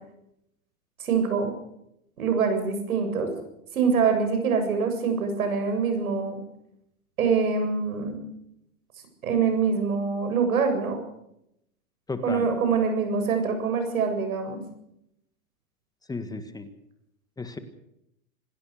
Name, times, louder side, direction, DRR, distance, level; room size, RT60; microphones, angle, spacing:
voice 1, 1.0-1.5 2.2-3.3 3.7-6.4 7.2-8.2 9.2-11.0 12.2-14.6, right 5 dB, 85° right, 6 dB, 7.7 m, -24 dB
voice 2, 12.1-12.5 16.1-16.7 17.4-17.6, left 3 dB, 10° left, 9 dB, 1.6 m, -34 dB
26.5 x 17.0 x 6.7 m, 0.80 s
hypercardioid pair, 130°, 41 cm